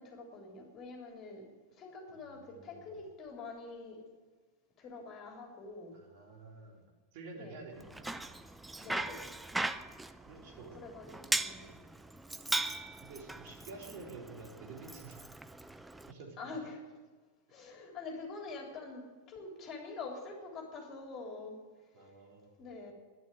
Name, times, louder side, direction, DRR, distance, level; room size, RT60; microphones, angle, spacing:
voice 1, 0.0-4.0 4.8-6.0 7.3-7.6 8.8-9.3 10.7-11.7 16.4-16.8 17.5-21.6 22.0-22.1 22.6-22.9, left 3 dB, 30° left, 2 dB, 3.6 m, -46 dB
voice 2, 2.1-3.0 5.9-6.9 7.1-8.4 10.2-10.8 11.1-11.2 11.5-11.9 13.0-15.2 16.1-16.4 21.9-22.6, right 4 dB, 50° right, 0 dB, 3.8 m, -50 dB
Bicycle, 7.8-16.1, right 2 dB, 5° right, 0.6 m, -39 dB
12.5 x 11.5 x 9.4 m, 1.4 s
figure-of-eight pair, 90°, 0 cm